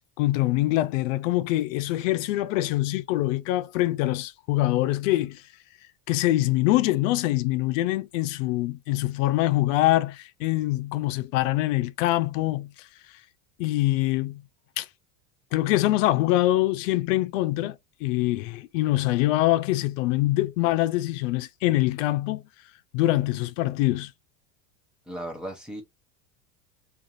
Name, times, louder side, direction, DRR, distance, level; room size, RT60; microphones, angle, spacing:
voice 1, 0.2-5.4 6.1-12.7 13.6-14.4 14.8-14.9 15.5-17.8 18.0-22.4 22.9-24.1, left 16 dB, 75° left, 0.6 m, -24 dB
voice 2, 25.1-25.8, right 1 dB, ahead, 0.4 m, -36 dB
2.4 x 2.4 x 2.6 m
supercardioid pair, 155°, 39 cm